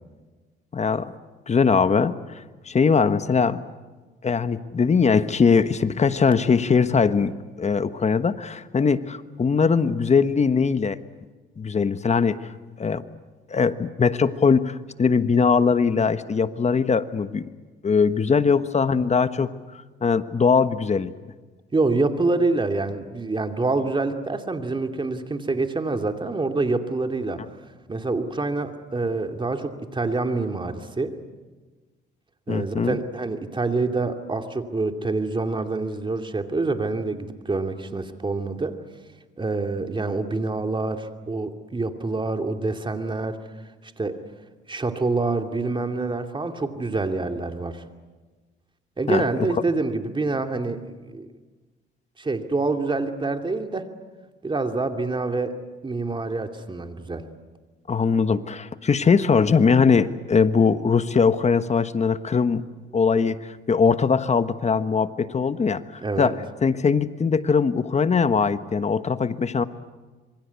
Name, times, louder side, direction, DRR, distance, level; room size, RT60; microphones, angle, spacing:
voice 1, 0.7-1.1 1.5-2.1 2.7-3.6 4.2-7.3 7.6-11.0 11.6-12.4 12.8-13.0 13.5-17.5 17.8-19.5 20.0-21.1 32.5-33.0 49.1-49.2 57.9-62.6 62.9-63.4 63.7-66.3 66.6-69.6, left 5 dB, 35° left, 12 dB, 1.3 m, -21 dB
voice 2, 21.7-27.4 27.9-31.1 32.5-38.8 39.4-43.4 44.0-44.2 44.7-47.8 49.0-50.8 51.1-51.3 52.2-53.9 54.4-55.5 55.8-57.3 66.0-66.4, right 3 dB, 25° right, 5 dB, 2.6 m, -26 dB
26.5 x 23.0 x 8.3 m, 1.3 s
cardioid pair, 90°, 20 cm